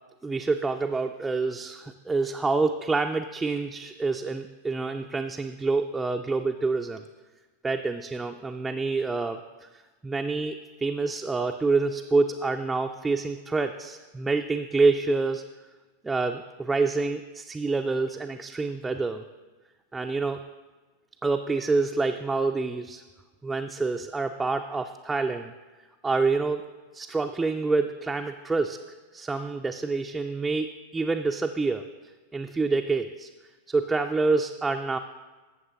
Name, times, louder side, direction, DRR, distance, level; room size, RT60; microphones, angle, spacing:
voice 1, 0.2-7.0 7.6-9.7 10.0-15.4 16.0-19.2 19.9-20.4 21.2-23.0 23.4-25.5 26.0-26.6 26.9-28.8 29.1-31.8 32.3-33.3 33.7-35.0, right 3 dB, 10° right, 4 dB, 0.3 m, -27 dB
14.0 x 7.2 x 2.9 m, 1.3 s
figure-of-eight pair, 90°, 0 cm